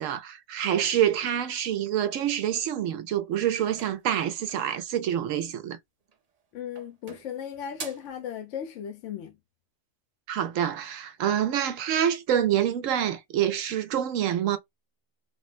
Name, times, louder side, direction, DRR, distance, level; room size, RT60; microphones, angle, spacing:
voice 1, 0.0-5.8 10.3-14.6, right 10 dB, 80° right, 1.0 m, -26 dB
sound 1, 3.5-4.8 6.0-6.4 6.7-8.2, right 5 dB, 45° right, 0.5 m, -45 dB
voice 2, 6.5-9.4, left 9 dB, 70° left, 0.9 m, -36 dB
3.6 x 2.1 x 2.4 m
omnidirectional pair, 1.4 m